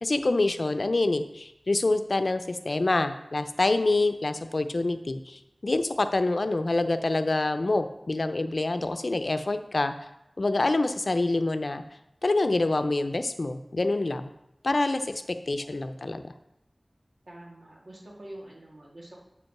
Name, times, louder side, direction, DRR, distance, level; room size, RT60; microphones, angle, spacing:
voice 1, 0.0-10.1 10.4-11.8 12.2-14.3 14.6-16.3, left 2 dB, 75° left, 9 dB, 0.6 m, -26 dB
voice 2, 17.3-19.2, right 1 dB, 85° right, -2 dB, 2.1 m, -46 dB
8.1 x 5.3 x 5.9 m, 0.85 s
wide cardioid pair, 60°, 0 cm